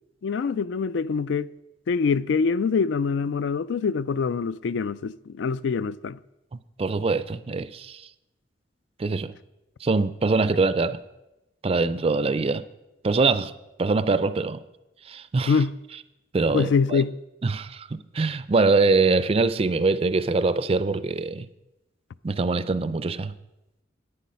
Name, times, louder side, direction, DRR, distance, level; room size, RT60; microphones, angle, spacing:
voice 1, 0.2-1.5 1.9-6.2 15.5-15.7 16.5-17.1, left 5 dB, 75° left, 0.4 m, -24 dB
voice 2, 6.8-8.0 9.0-9.3 9.8-11.0 11.6-12.6 13.0-13.5 13.8-14.6 15.1-15.5 16.3-17.0 17.4-21.5 22.2-23.3, right 3 dB, 30° right, 0.4 m, -23 dB
10.0 x 9.0 x 5.6 m
head